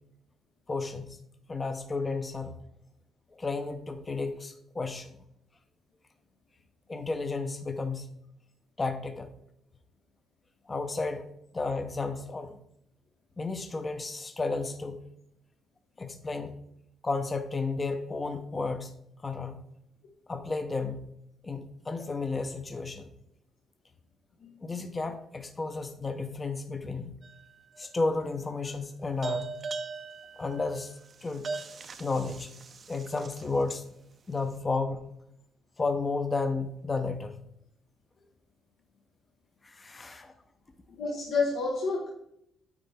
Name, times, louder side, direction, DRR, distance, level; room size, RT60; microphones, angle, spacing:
voice 1, 0.7-1.2 1.5-2.5 3.3-5.1 6.9-8.1 8.8-9.3 10.7-11.3 11.5-12.6 13.4-15.0 16.0-16.5 17.0-18.9 19.2-19.6 20.3-21.0 21.4-23.1 24.6-27.1 27.8-29.5 30.4-30.9 31.2-31.5 32.0-32.5 32.9-33.8 34.3-35.0 35.8-37.3 39.6-40.3, left 3 dB, 25° left, 8 dB, 0.7 m, -32 dB
sound 1, 27.2-27.8 29.2-33.7, right 4 dB, 40° right, 0.6 m, -39 dB
voice 2, 41.0-42.1, left 4 dB, 75° left, -2 dB, 1.2 m, -29 dB
9.8 x 4.3 x 3.5 m, 0.75 s
cardioid pair, 120°, 0 cm